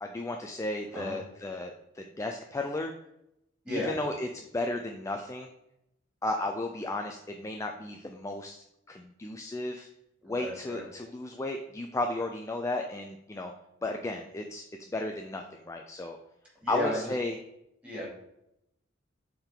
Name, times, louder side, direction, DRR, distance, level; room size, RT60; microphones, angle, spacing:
voice 1, 0.0-2.9 3.7-5.5 6.2-9.9 10.2-13.5 13.8-16.2 16.7-17.4, left 2 dB, 15° left, 3 dB, 0.4 m, -34 dB
voice 2, 3.6-3.9 10.2-10.8 16.6-17.0 17.8-18.1, left 1 dB, 5° right, -5 dB, 2.4 m, -33 dB
7.1 x 3.7 x 3.8 m, 0.82 s
head